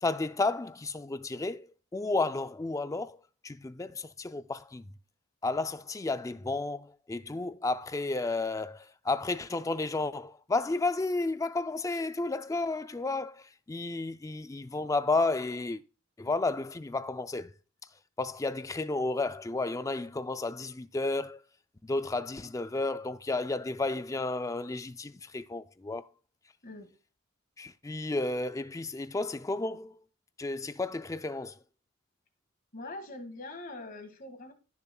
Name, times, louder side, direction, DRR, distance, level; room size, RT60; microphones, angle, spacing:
voice 1, 0.0-1.7 1.9-3.2 3.4-4.8 5.4-15.8 16.2-17.5 18.2-21.4 21.8-26.1 27.6-30.0 30.4-31.6, left 3 dB, 15° left, 0.3 m, -32 dB
voice 2, 32.7-34.5, left 2 dB, 45° left, 1.9 m, -43 dB
16.5 x 6.8 x 2.3 m
head